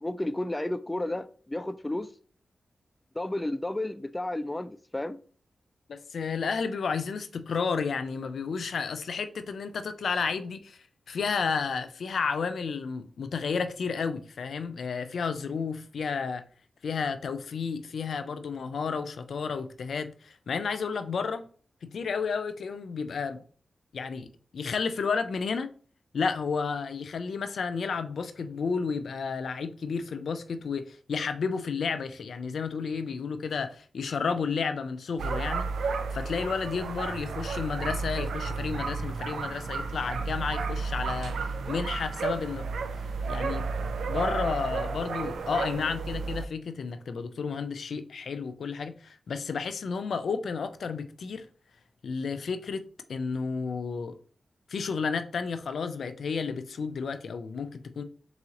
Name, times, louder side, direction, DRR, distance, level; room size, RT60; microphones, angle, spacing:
voice 1, 0.0-2.1 3.2-5.2, left 1 dB, 20° left, 0.4 m, -32 dB
voice 2, 5.9-16.4 16.8-21.5 21.8-23.4 23.9-25.7 26.1-41.4 41.7-42.6 43.3-43.7 44.1-51.5 52.0-54.1 54.7-58.0, left 5 dB, 80° left, 0.4 m, -32 dB
sound 1, 35.2-46.5, right 4 dB, 85° right, 0.4 m, -32 dB
3.9 x 3.0 x 3.7 m
cardioid pair, 45°, 0 cm